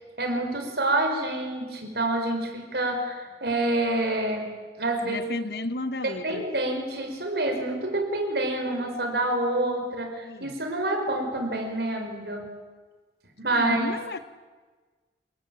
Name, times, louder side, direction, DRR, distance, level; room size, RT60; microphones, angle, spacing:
voice 1, 0.2-5.3 6.0-12.6 13.4-13.9, right 2 dB, 65° right, 5.2 m, -27 dB
voice 2, 5.0-6.4 10.2-10.5 13.5-14.2, left 2 dB, 60° left, 1.0 m, -33 dB
27.5 x 19.0 x 8.9 m
head